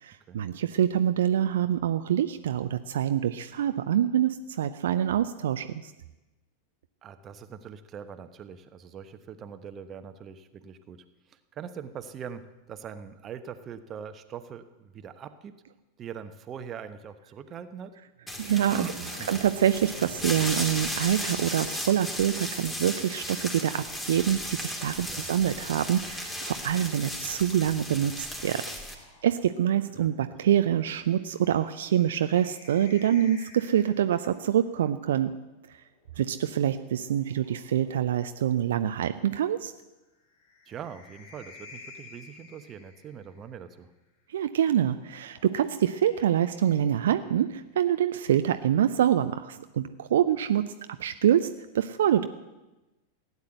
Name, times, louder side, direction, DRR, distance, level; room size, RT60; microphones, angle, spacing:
voice 1, 0.0-5.9 18.4-18.8 19.3-28.6 29.2-35.3 36.2-39.7 44.3-50.6 51.0-51.5 51.7-52.3, right 10 dB, 60° right, 10 dB, 0.5 m, -25 dB
voice 2, 7.0-15.5 16.0-18.0 18.7-18.9 19.2-19.3 25.0-25.3 30.0-30.4 40.7-43.9, right 7 dB, 30° right, 10 dB, 1.1 m, -42 dB
sound 1, 18.3-28.9, equal, 10° left, 2.6 m, -35 dB
sound 2, 18.9-23.0, left 2 dB, 75° left, 1.9 m, -49 dB
sound 3, 28.9-34.5 35.8-38.8 40.2-43.6 44.9-47.8, left 4 dB, 50° left, 3.2 m, -54 dB
16.5 x 9.7 x 7.9 m, 1.1 s
figure-of-eight pair, 90°, 0 cm